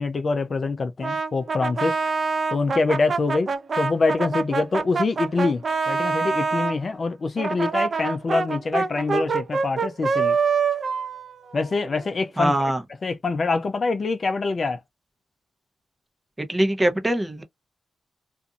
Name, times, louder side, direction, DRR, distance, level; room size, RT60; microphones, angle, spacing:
voice 1, 0.0-2.0 2.5-10.4 11.5-12.5 13.0-14.8, left 3 dB, 45° left, 0.4 m, -25 dB
Brass instrument, 1.0-6.8 7.4-12.1, right 5 dB, 50° right, 0.5 m, -25 dB
voice 2, 12.4-12.8 16.4-17.4, right 1 dB, 15° right, 0.8 m, -22 dB
2.5 x 2.5 x 2.4 m
cardioid pair, 80°, 0 cm